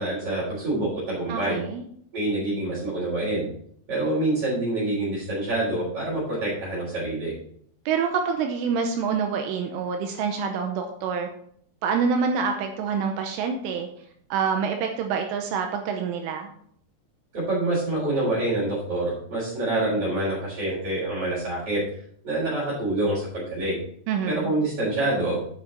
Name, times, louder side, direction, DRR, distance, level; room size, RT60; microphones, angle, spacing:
voice 1, 0.0-1.6 2.1-3.5 3.9-7.3 17.3-21.8 22.2-23.8 24.2-25.4, right 2 dB, 30° right, -10 dB, 4.2 m, -26 dB
voice 2, 1.3-1.8 7.9-11.3 11.8-13.9 14.3-16.5 24.1-24.5, right 6 dB, 80° right, 4 dB, 3.2 m, -26 dB
8.3 x 8.2 x 4.1 m, 0.64 s
omnidirectional pair, 5.9 m